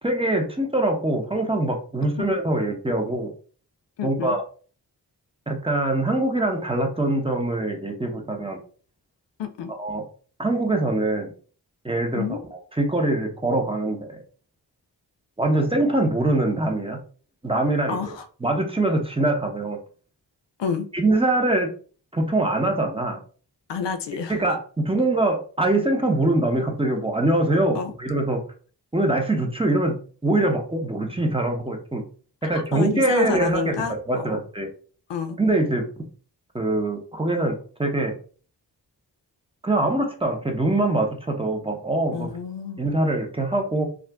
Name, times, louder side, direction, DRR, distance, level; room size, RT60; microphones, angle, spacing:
voice 1, 0.0-3.3 4.0-4.4 5.5-8.6 9.7-10.0 10.4-11.3 11.8-14.2 15.4-17.0 17.4-18.0 18.4-19.8 20.9-21.7 22.1-23.2 24.3-28.4 28.9-29.9 30.2-32.0 32.4-34.7 35.4-35.9 36.5-38.1 39.6-42.3 42.8-43.9, right 2 dB, 15° right, 3 dB, 0.9 m, -23 dB
voice 2, 4.0-4.4 9.4-9.7 12.1-12.4 17.9-18.2 20.6-20.9 23.7-24.4 27.7-27.9 32.5-34.4 35.1-35.4 42.1-42.8, left 6 dB, 85° left, 9 dB, 0.5 m, -29 dB
2.6 x 2.4 x 3.4 m, 0.41 s
cardioid pair, 45°, 41 cm